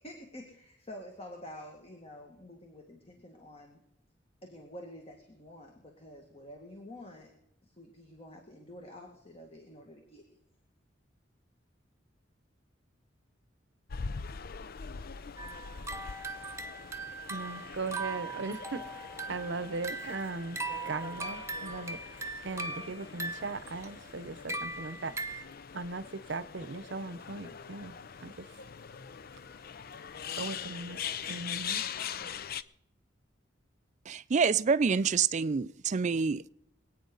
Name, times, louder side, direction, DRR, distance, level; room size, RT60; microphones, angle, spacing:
voice 1, 0.0-3.8 4.4-7.3 7.6-10.4, left 1 dB, 35° left, 1.9 m, -48 dB
sound 1, 13.9-32.6, left 7 dB, 55° left, 0.5 m, -42 dB
sound 2, 15.4-25.4, right 3 dB, 15° right, 0.8 m, -40 dB
voice 2, 17.3-25.5 25.7-27.9 28.2-28.5 30.4-32.0, right 3 dB, 70° right, 0.8 m, -39 dB
voice 3, 34.1-36.5, right 5 dB, 40° right, 0.4 m, -27 dB
25.5 x 9.3 x 3.9 m
head